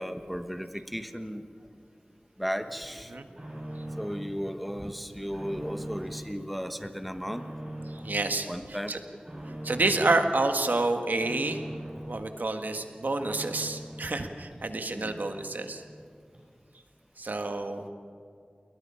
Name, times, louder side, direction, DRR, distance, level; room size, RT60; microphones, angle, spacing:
voice 1, 0.0-1.4 2.4-3.1 4.0-7.4 8.5-8.9 9.3-9.6 14.9-15.2, equal, ahead, 8 dB, 1.2 m, -35 dB
sound 1, 2.7-4.3 4.7-6.2 6.6-8.2 8.6-10.2 10.5-12.1 12.5-14.1 14.5-14.6 14.9-15.0 15.1-16.0 16.3-16.4, right 1 dB, 35° right, 7.4 m, -42 dB
voice 2, 8.0-8.5 8.9-9.0 9.6-11.6 12.1-15.8 17.2-17.8, right 2 dB, 80° right, 6 dB, 1.6 m, -28 dB
28.5 x 21.0 x 5.7 m, 2.3 s
wide cardioid pair, 60°, 3 cm